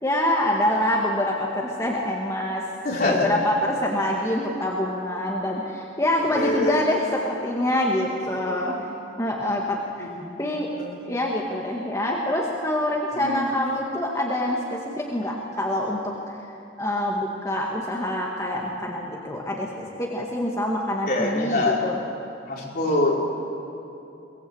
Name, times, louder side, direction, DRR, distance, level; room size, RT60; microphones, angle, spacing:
voice 1, 0.0-2.6 3.0-8.8 9.2-10.1 10.4-10.7 11.0-16.1 16.8-22.0, left 1 dB, 15° left, -2 dB, 1.9 m, -25 dB
voice 2, 2.8-3.3 6.3-6.8 8.3-9.0 10.0-10.4 10.8-11.1 13.1-13.4 21.1-21.8 22.5-23.2, left 2 dB, 50° left, -3 dB, 4.7 m, -25 dB
22.5 x 19.5 x 8.1 m, 2.9 s
head